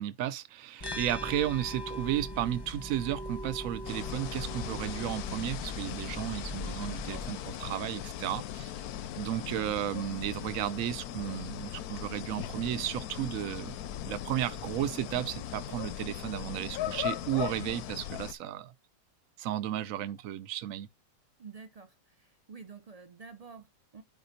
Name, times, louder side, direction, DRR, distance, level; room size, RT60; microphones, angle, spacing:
voice 1, 0.0-8.7 9.2-13.8 14.1-18.7 19.4-20.9, right 12 dB, 65° right, 1.0 m, -34 dB
sound 1, 0.8-7.3, equal, 20° left, 0.7 m, -40 dB
sound 2, 3.8-18.3, left 11 dB, 75° left, 1.1 m, -39 dB
voice 2, 21.4-24.0, right 5 dB, 45° right, 0.5 m, -49 dB
9.4 x 5.2 x 2.8 m
omnidirectional pair, 1.7 m